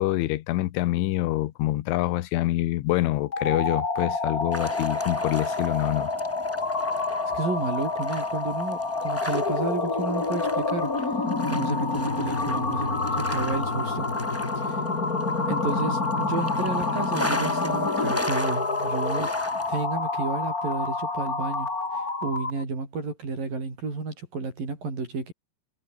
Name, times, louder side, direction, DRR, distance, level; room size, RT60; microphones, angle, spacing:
voice 1, 0.0-6.1, left 16 dB, 85° left, 3.6 m, -26 dB
sound 1, 3.2-22.6, left 3 dB, 20° left, 3.5 m, -28 dB
sound 2, 4.5-19.9, equal, 5° left, 5.8 m, -38 dB
voice 2, 7.3-10.9 11.5-14.1 14.6-14.8 15.5-25.3, right 4 dB, 45° right, 8.8 m, -32 dB
omnidirectional pair, 5.4 m